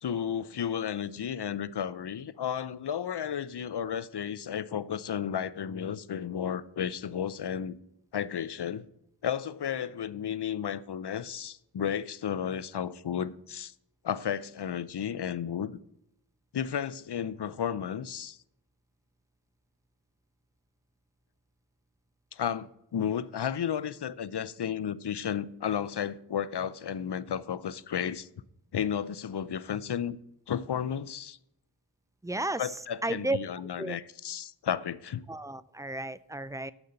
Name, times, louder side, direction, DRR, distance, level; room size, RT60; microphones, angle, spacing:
voice 1, 0.0-7.8 8.1-8.9 9.2-13.7 14.0-15.8 16.5-18.4 22.3-28.3 28.7-30.2 30.5-31.4 32.6-35.2, left 8 dB, 65° left, 0.6 m, -33 dB
voice 2, 32.2-32.7 33.0-33.4 33.8-34.0 35.3-36.7, right 2 dB, 10° right, 0.3 m, -33 dB
7.2 x 6.6 x 7.7 m
wide cardioid pair, 50°, 43 cm